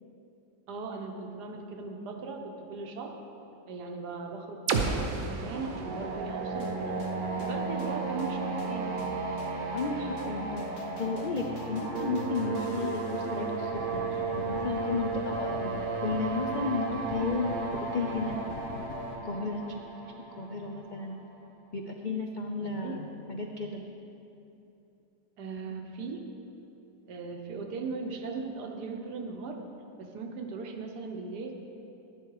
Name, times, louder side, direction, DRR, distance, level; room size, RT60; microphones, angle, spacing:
voice 1, 0.7-3.2 3.7-8.9 22.6-23.0 25.4-26.2 27.1-29.6 30.0-31.5, right 4 dB, 85° right, 3 dB, 1.6 m, -38 dB
sound 1, 4.7-8.5, right 4 dB, 60° right, 1.2 m, -34 dB
sound 2, 5.4-21.2, right 5 dB, 40° right, 0.9 m, -35 dB
sound 3, 6.5-19.2, left 4 dB, 50° left, 0.9 m, -41 dB
voice 2, 9.7-15.7 16.0-17.5 17.9-18.4 19.2-19.8 20.4-21.1 21.7-23.8, left 3 dB, 75° left, 3 dB, 0.4 m, -33 dB
11.0 x 10.5 x 4.7 m, 2.9 s
omnidirectional pair, 1.7 m